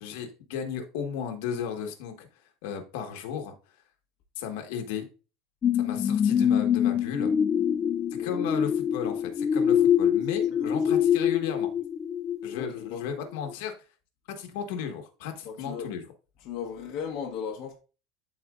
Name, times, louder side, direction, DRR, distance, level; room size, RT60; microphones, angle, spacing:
voice 1, 0.0-2.3 2.6-3.5 4.4-5.1 5.7-7.3 8.2-11.7 12.4-13.7 14.3-16.0, left 8 dB, 75° left, 1.4 m, -35 dB
sound 1, 5.6-13.0 13.5-13.6, left 8 dB, 25° left, 0.3 m, -25 dB
voice 2, 10.5-10.9 12.5-13.0 15.4-15.9 16.4-17.8, left 7 dB, 50° left, 1.1 m, -36 dB
12.0 x 4.2 x 2.5 m
cardioid pair, 165°, 0 cm